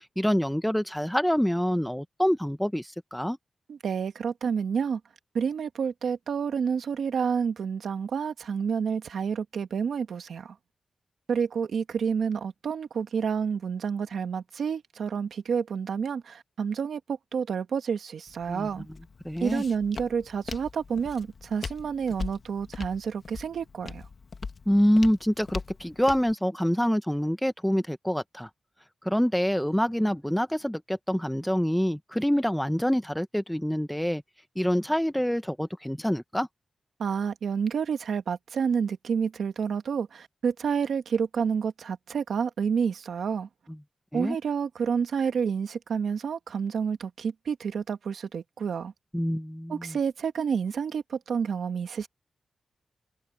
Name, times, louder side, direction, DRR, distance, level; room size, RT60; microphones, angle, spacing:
voice 1, 0.2-3.4 18.5-18.7 19.2-19.6 24.7-28.5 29.0-34.2 34.6-36.5 44.1-44.4 49.1-50.0, equal, 5° left, 0.9 m, -26 dB
voice 2, 3.7-5.0 5.3-10.5 11.3-18.9 19.4-24.0 37.0-43.5 44.1-48.9 49.7-52.1, right 6 dB, 90° right, 1.6 m, -29 dB
Walk footsteps, 18.3-26.3, left 4 dB, 50° left, 1.4 m, -41 dB
wide cardioid pair, 140°, 0 cm